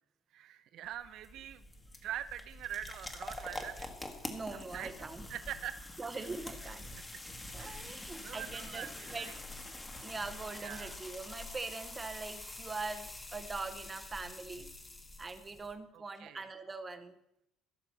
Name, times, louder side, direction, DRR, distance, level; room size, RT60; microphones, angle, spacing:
voice 1, 0.3-1.7 2.0-3.9 4.5-4.9 5.3-5.8 6.6-6.7 7.1-7.2 7.6-9.3 10.6-11.0 15.9-16.5, right 11 dB, 55° right, 12 dB, 1.0 m, -44 dB
sound 1, 0.8-15.7, left 2 dB, 15° left, 1.6 m, -46 dB
voice 2, 4.3-5.3 6.0-6.9 7.5-9.3 10.0-14.7 15.2-17.1, right 3 dB, 15° right, 9 dB, 1.1 m, -42 dB
16.0 x 6.8 x 7.3 m, 0.79 s
cardioid pair, 160°, 0 cm